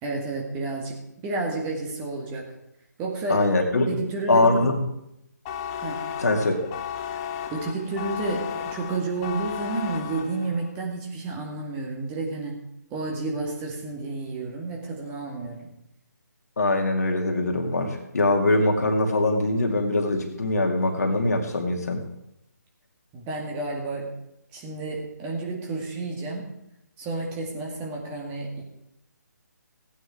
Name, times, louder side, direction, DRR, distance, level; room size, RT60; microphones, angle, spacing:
voice 1, 0.0-2.5 3.0-3.5 3.9-4.6 5.8-6.1 7.1-12.6 12.9-15.7 23.1-24.1 24.5-26.5 27.0-28.6, right 3 dB, 15° right, -1 dB, 2.1 m, -31 dB
voice 2, 3.3-3.9 4.3-4.8 6.2-6.5 16.6-22.0, left 2 dB, 60° left, 2 dB, 2.4 m, -22 dB
sound 1, 5.4-10.7, left 8 dB, 20° left, 0.7 m, -34 dB
16.5 x 9.2 x 4.8 m, 0.81 s
figure-of-eight pair, 145°, 10 cm